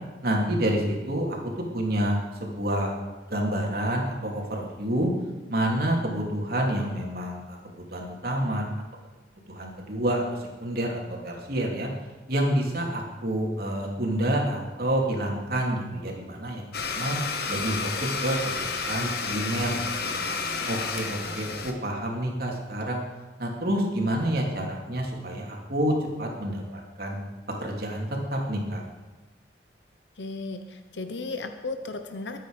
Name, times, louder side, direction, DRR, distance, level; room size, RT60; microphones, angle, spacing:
voice 1, 0.2-1.4 1.7-2.9 3.3-5.1 5.5-8.6 9.5-11.9 12.3-17.2 17.5-18.5 18.9-20.2 20.7-23.0 23.4-27.2 27.6-28.8, right 1 dB, 55° right, -1 dB, 3.2 m, -28 dB
Domestic sounds home sounds, 16.7-21.7, left 4 dB, 60° left, 1.5 m, -31 dB
voice 2, 30.2-32.4, left 3 dB, 85° left, 7 dB, 1.0 m, -35 dB
22.0 x 9.2 x 5.2 m, 1.2 s
head